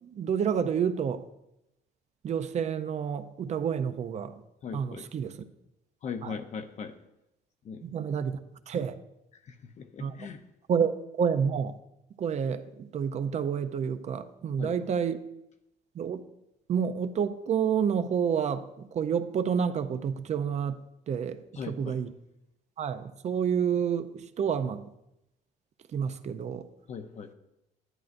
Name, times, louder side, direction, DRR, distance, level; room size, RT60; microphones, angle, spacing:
voice 1, 0.0-1.2 2.2-4.4 4.7-5.4 6.2-6.3 7.8-8.4 8.7-9.0 10.0-10.2 10.7-11.8 12.2-15.2 15.9-16.2 16.7-22.1 22.8-24.8 25.9-26.7, right 7 dB, 40° right, 11 dB, 0.5 m, -29 dB
voice 2, 4.6-5.1 6.0-6.9 7.6-7.8 9.4-10.4 14.6-14.7 21.5-22.0 26.9-27.3, left 6 dB, 45° left, 7 dB, 0.6 m, -39 dB
11.0 x 9.2 x 2.5 m, 0.86 s
cardioid pair, 110°, 17 cm